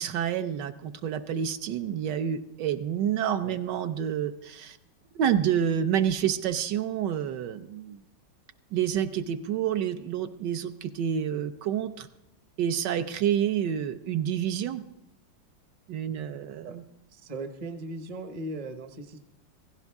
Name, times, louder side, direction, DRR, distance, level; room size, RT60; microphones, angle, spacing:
voice 1, 0.0-4.8 5.1-8.0 8.7-12.1 12.6-14.8 15.9-16.8, right 9 dB, 75° right, 10 dB, 1.2 m, -28 dB
voice 2, 17.1-19.2, right 2 dB, 30° right, 8 dB, 0.7 m, -38 dB
16.0 x 16.0 x 3.5 m, 0.91 s
omnidirectional pair, 2.0 m